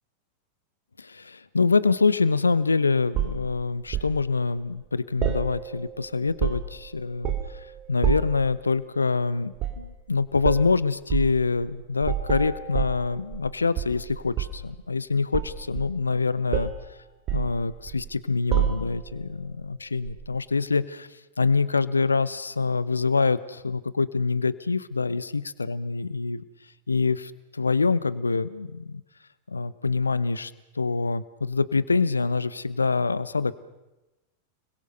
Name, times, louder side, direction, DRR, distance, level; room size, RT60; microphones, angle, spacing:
voice 1, 1.0-16.7 17.3-21.1 21.4-26.4 26.9-29.0 29.5-33.6, left 4 dB, 75° left, 18 dB, 0.8 m, -25 dB
sound 1, 3.1-4.2 5.2-5.9 6.2-6.8 7.2-7.6 8.0-8.4 9.6-9.9 10.4-10.7 11.1-11.4 12.0-13.5 13.8-14.7 15.3-16.2 16.5-16.8 17.3-18.1 18.5-19.1 20.1-20.2, right 10 dB, 35° right, 2.4 m, -28 dB
29.5 x 21.5 x 6.6 m, 1.0 s
figure-of-eight pair, 90°, 0 cm